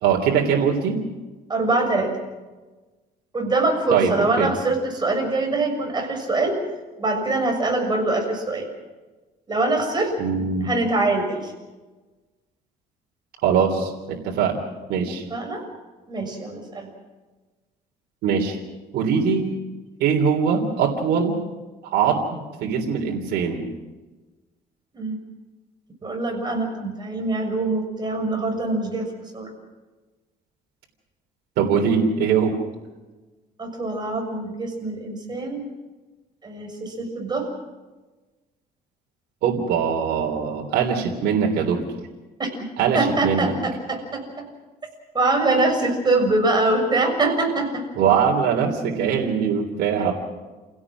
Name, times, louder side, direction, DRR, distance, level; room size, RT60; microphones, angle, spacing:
voice 1, 0.0-1.0 3.9-4.5 10.2-10.7 13.4-14.6 14.9-15.2 18.2-18.6 18.9-19.5 20.0-21.4 21.8-23.6 31.6-32.6 39.4-41.8 42.8-43.5 48.0-50.1, right 6 dB, 75° right, 1 dB, 3.3 m, -22 dB
voice 2, 1.5-2.1 3.3-6.6 7.0-8.7 9.5-10.1 10.6-11.5 15.3-15.6 16.1-16.9 24.9-25.2 26.0-29.1 29.3-29.5 33.6-35.6 36.4-37.5 42.4-42.5 42.9-44.2 45.1-47.8, right 2 dB, 25° right, 3 dB, 6.6 m, -23 dB
29.5 x 17.0 x 6.2 m, 1.2 s
cardioid pair, 110°, 17 cm